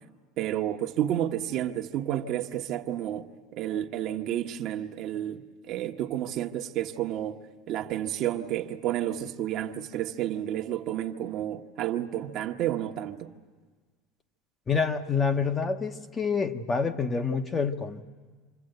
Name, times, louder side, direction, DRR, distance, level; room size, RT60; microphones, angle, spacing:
voice 1, 0.4-7.4 7.7-13.3, right 11 dB, 50° right, 1.2 m, -31 dB
voice 2, 14.7-18.0, left 5 dB, 20° left, 1.1 m, -27 dB
27.0 x 27.0 x 8.0 m
supercardioid pair, 130°, 0 cm